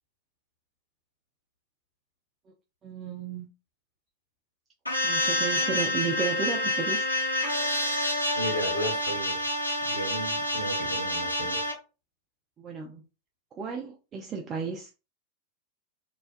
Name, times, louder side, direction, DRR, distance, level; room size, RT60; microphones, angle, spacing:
voice 1, 2.8-3.5 5.0-7.1 12.6-13.0 13.5-15.0, right 6 dB, 25° right, 0.4 m, -33 dB
sound 1, 4.9-11.7, left 1 dB, 85° left, 0.5 m, -28 dB
voice 2, 8.3-9.4 9.8-11.6, equal, 65° left, 1.2 m, -34 dB
2.3 x 2.2 x 2.4 m
figure-of-eight pair, 90°, 0 cm